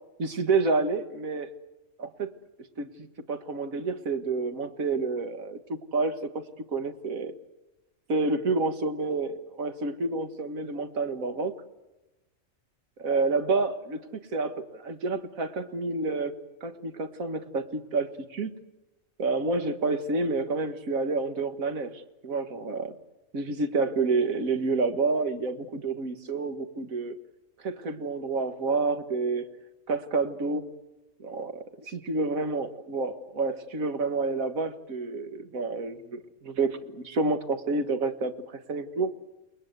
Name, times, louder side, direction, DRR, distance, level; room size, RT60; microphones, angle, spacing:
voice 1, 0.2-1.5 2.0-2.3 2.8-6.4 6.7-7.3 8.1-11.6 13.0-14.0 14.3-18.5 19.2-23.0 23.3-27.2 27.6-29.5 29.9-30.7 31.2-39.1, right 3 dB, 70° right, 8 dB, 2.0 m, -29 dB
29.5 x 20.5 x 8.1 m, 1.0 s
omnidirectional pair, 1.5 m